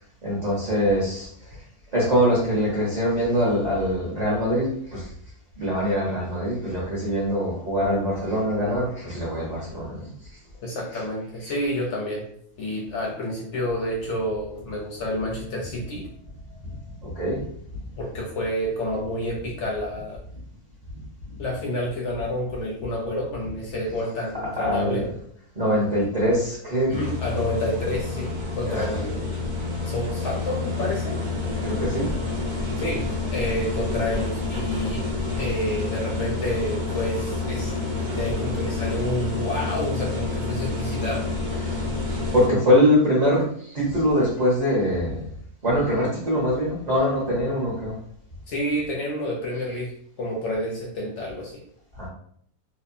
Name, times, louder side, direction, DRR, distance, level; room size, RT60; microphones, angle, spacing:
voice 1, 0.2-1.6 1.9-5.1 5.6-10.1 17.0-17.4 24.6-25.0 25.5-26.9 28.6-29.0 31.6-32.1 41.6-41.8 42.3-45.2 45.6-48.0 51.9-52.1, equal, 40° right, -6 dB, 0.6 m, -23 dB
voice 2, 10.6-12.3 12.6-16.1 18.0-20.2 21.4-25.1 26.9-29.5 29.9-31.2 32.8-41.3 48.5-51.6, left 1 dB, 65° left, -2 dB, 0.7 m, -29 dB
sound 1, 26.9-42.5, left 3 dB, 80° right, 0.4 m, -28 dB
2.8 x 2.1 x 2.5 m, 0.63 s
omnidirectional pair, 1.7 m